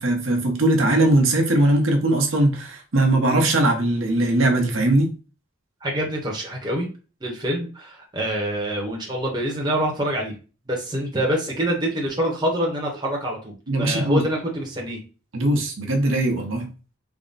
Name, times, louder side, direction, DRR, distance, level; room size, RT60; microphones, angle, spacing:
voice 1, 0.0-5.1 13.7-14.2 15.3-16.7, right 1 dB, 75° right, 0.9 m, -20 dB
voice 2, 5.8-6.9 7.2-10.3 10.7-15.0, right 1 dB, 20° right, 0.8 m, -26 dB
3.5 x 2.1 x 4.0 m
head